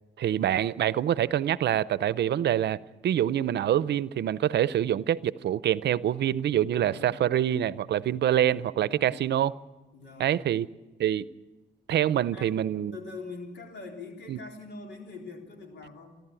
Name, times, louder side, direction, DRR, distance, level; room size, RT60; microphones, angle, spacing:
voice 1, 0.2-9.5 10.2-10.7 11.0-11.3 11.9-13.0 14.3-14.4, right 11 dB, 85° right, 0.6 m, -26 dB
voice 2, 6.7-7.2 8.3-9.2 9.9-10.4 12.3-12.6 12.9-16.2, left 3 dB, 90° left, 3.8 m, -43 dB
28.0 x 11.5 x 8.9 m
cardioid pair, 65°, 17 cm